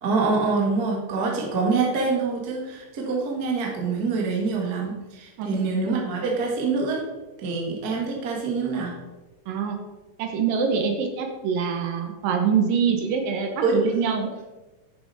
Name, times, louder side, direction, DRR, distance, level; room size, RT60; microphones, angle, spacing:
voice 1, 0.0-7.0 7.4-8.9 13.6-13.8, right 4 dB, 55° right, -1 dB, 1.0 m, -25 dB
voice 2, 9.5-9.8 10.2-14.3, right 6 dB, 70° right, 4 dB, 2.4 m, -24 dB
9.8 x 6.8 x 4.1 m, 1.1 s
omnidirectional pair, 4.5 m